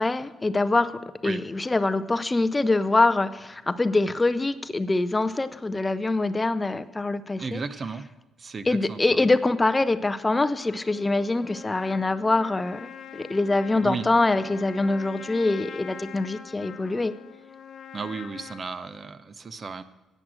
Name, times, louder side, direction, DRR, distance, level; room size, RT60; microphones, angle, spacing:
voice 1, 0.0-7.6 8.7-17.1, left 2 dB, 20° left, 11 dB, 0.5 m, -24 dB
voice 2, 7.4-8.1 8.4-9.2 13.8-14.1 17.9-19.8, right 4 dB, 40° right, 13 dB, 0.7 m, -34 dB
Trumpet, 10.6-18.6, left 7 dB, 60° left, 0.9 m, -43 dB
10.5 x 8.9 x 6.2 m, 1.1 s
cardioid pair, 90°, 0 cm